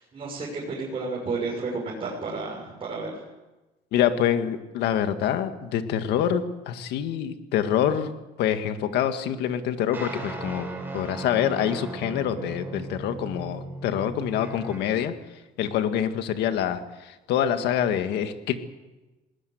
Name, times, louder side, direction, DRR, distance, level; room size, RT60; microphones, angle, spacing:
voice 1, 0.0-3.1, right 3 dB, 30° right, -4 dB, 6.6 m, -32 dB
voice 2, 3.9-8.1 8.4-10.7 10.9-15.1 15.6-18.5, left 9 dB, 85° left, 8 dB, 1.9 m, -26 dB
sound 1, 9.9-15.1, right 2 dB, 10° right, 7.6 m, -37 dB
20.5 x 19.0 x 8.0 m, 1.1 s
cardioid pair, 110°, 17 cm